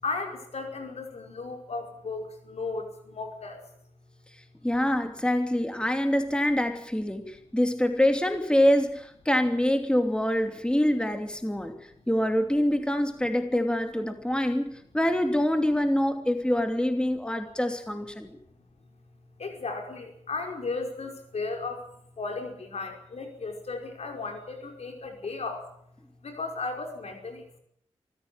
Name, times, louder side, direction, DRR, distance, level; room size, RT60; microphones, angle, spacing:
voice 1, 0.0-3.6 12.0-12.1 19.4-21.8 22.2-25.7 26.2-27.6, left 3 dB, 70° left, 3 dB, 5.4 m, -35 dB
voice 2, 4.6-11.7 12.1-18.4, left 1 dB, 10° left, 6 dB, 2.9 m, -25 dB
24.5 x 15.0 x 9.0 m, 0.70 s
cardioid pair, 50°, 11 cm